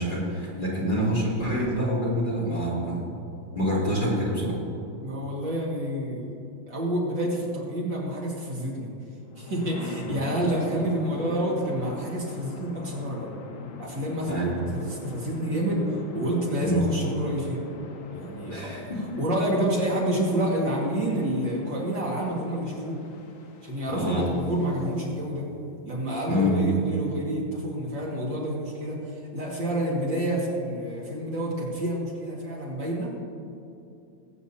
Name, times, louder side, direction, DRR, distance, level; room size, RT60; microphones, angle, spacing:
voice 1, 0.0-3.1 3.5-4.6 14.3-14.6 16.6-16.8 18.5-19.2 23.9-24.3 26.3-26.7, equal, 20° left, -8 dB, 3.1 m, -26 dB
voice 2, 5.0-6.3 6.7-8.9 9.4-13.3 13.8-17.6 18.1-18.7 19.2-23.0 23.6-25.5 25.8-33.1, right 1 dB, 60° right, -4 dB, 2.8 m, -28 dB
sound 1, 9.2-25.2, left 4 dB, 75° left, 1.6 m, -43 dB
21.0 x 8.8 x 2.8 m, 2.7 s
omnidirectional pair, 2.3 m